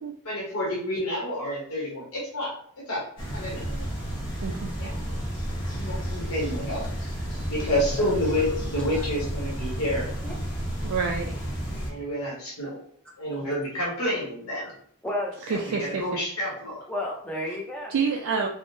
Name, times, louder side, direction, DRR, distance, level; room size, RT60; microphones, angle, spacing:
voice 1, 0.2-2.5 2.9-3.0 3.3-3.6 4.8-5.2 5.7-6.8 7.5-10.1 11.8-12.8 13.2-14.7 15.5-16.8, left 1 dB, 80° left, -5 dB, 1.0 m, -29 dB
sound 1, 3.2-11.9, equal, 55° left, 0.8 m, -32 dB
voice 2, 8.0-8.4 8.9-9.1 10.2-10.4 15.0-15.3 16.9-17.9, left 1 dB, 5° left, -2 dB, 0.5 m, -32 dB
voice 3, 10.8-11.3 15.5-16.1 17.9-18.5, right 5 dB, 70° right, 0 dB, 0.3 m, -27 dB
3.5 x 2.0 x 2.6 m, 0.62 s
head